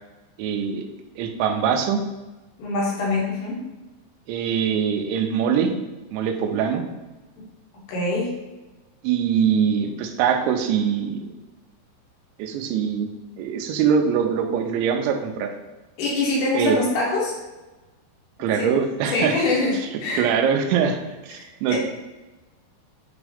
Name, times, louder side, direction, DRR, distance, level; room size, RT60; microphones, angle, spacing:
voice 1, 0.4-0.8 1.2-2.0 4.3-5.7 6.1-6.8 9.0-11.3 12.4-13.1 13.4-15.5 16.5-16.8 18.4-19.4 20.1-21.0 21.2-21.8, right 7 dB, 85° right, 5 dB, 2.9 m, -23 dB
voice 2, 2.6-3.6 7.4-7.5 7.9-8.3 16.0-17.3 18.6-18.7 19.1-20.2 21.4-21.8, left 2 dB, 70° left, -3 dB, 3.5 m, -24 dB
8.9 x 3.6 x 3.4 m, 1.1 s
omnidirectional pair, 5.3 m